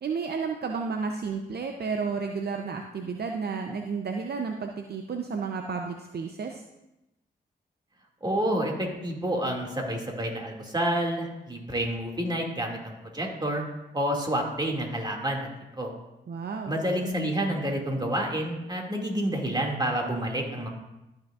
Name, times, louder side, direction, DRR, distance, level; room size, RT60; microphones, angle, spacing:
voice 1, 0.0-6.6 16.3-16.7, right 5 dB, 55° right, 4 dB, 0.7 m, -32 dB
voice 2, 8.2-13.6 13.9-15.5 15.7-15.9 16.7-20.7, right 1 dB, 20° right, 0 dB, 2.3 m, -29 dB
13.0 x 6.2 x 2.5 m, 0.94 s
supercardioid pair, 45°, 20 cm